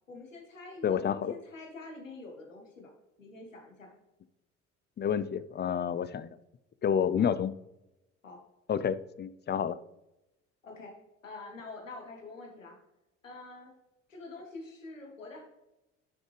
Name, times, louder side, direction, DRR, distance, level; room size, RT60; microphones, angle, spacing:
voice 1, 0.1-1.0 1.3-2.9 3.2-3.9 7.2-7.3 8.2-8.4 10.6-10.9 11.2-12.8 13.2-13.7 14.1-15.4, left 3 dB, 90° left, 1 dB, 1.5 m, -46 dB
voice 2, 0.8-1.3 5.0-6.4 6.8-7.5 8.7-9.8, left 8 dB, 30° left, 16 dB, 0.5 m, -29 dB
11.5 x 6.2 x 3.3 m, 0.93 s
figure-of-eight pair, 55°, 38 cm